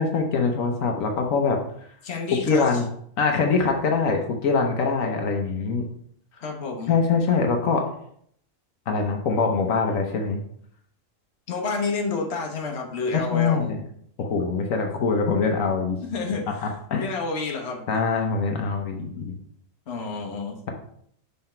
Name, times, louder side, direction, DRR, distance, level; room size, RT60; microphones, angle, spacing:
voice 1, 0.0-1.6 2.5-2.9 3.2-5.9 6.9-7.8 8.9-10.4 13.1-13.8 14.2-16.0 16.6-17.1 17.9-19.4, left 4 dB, 85° left, 3 dB, 1.3 m, -23 dB
voice 2, 2.0-2.7 6.4-6.9 11.5-13.6 16.0-16.7 17.0-17.8 19.2-19.3 19.9-20.6, left 4 dB, 55° left, 1 dB, 1.3 m, -29 dB
5.8 x 4.2 x 4.4 m, 0.65 s
omnidirectional pair, 1.4 m